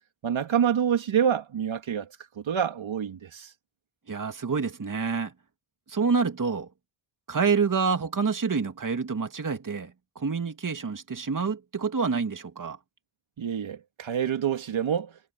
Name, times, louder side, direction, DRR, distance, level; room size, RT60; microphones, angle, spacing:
voice 1, 0.2-2.1 2.4-3.5 13.4-15.1, right 8 dB, 70° right, 2.8 m, -27 dB
voice 2, 4.1-5.3 5.9-6.7 7.3-12.8, right 5 dB, 40° right, 2.6 m, -27 dB
cardioid pair, 55°, 49 cm